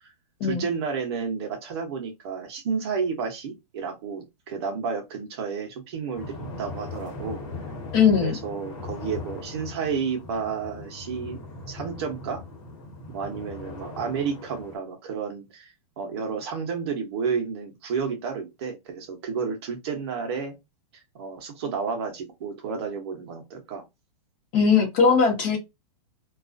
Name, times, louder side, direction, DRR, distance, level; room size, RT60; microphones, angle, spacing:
voice 1, 0.4-7.4 8.2-11.4 11.7-12.4 13.1-20.5 20.9-23.8, right 6 dB, 40° right, 0.7 m, -31 dB
sound 1, 6.1-14.8, left 3 dB, 45° left, 1.2 m, -39 dB
voice 2, 7.9-8.3 24.5-25.6, left 6 dB, 30° left, 0.8 m, -19 dB
2.3 x 2.3 x 2.5 m
hypercardioid pair, 165°, 20 cm